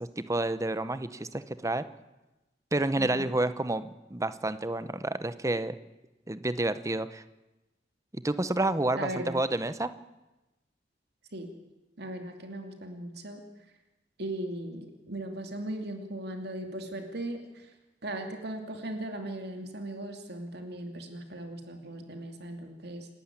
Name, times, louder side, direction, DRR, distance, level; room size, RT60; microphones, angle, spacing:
voice 1, 0.0-1.8 2.7-5.8 6.3-7.2 8.1-9.9, right 2 dB, 15° right, 13 dB, 0.9 m, -29 dB
voice 2, 3.0-3.3 9.0-9.4 11.3-11.5 12.0-13.4 14.2-17.7 18.0-23.1, right 1 dB, 60° right, 4 dB, 2.8 m, -38 dB
28.0 x 12.0 x 9.8 m, 1.0 s
head